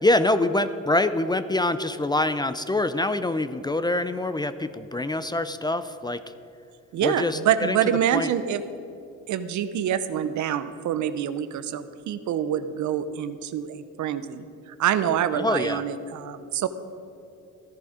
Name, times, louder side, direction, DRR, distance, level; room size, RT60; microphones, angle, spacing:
voice 1, 0.0-6.2 7.0-7.8 8.1-8.3 15.4-15.8, left 2 dB, 15° left, 12 dB, 0.4 m, -25 dB
voice 2, 6.9-8.6 9.3-14.4 14.8-16.7, right 9 dB, 75° right, 12 dB, 0.8 m, -26 dB
14.5 x 10.5 x 5.0 m, 2.7 s
cardioid pair, 90°, 30 cm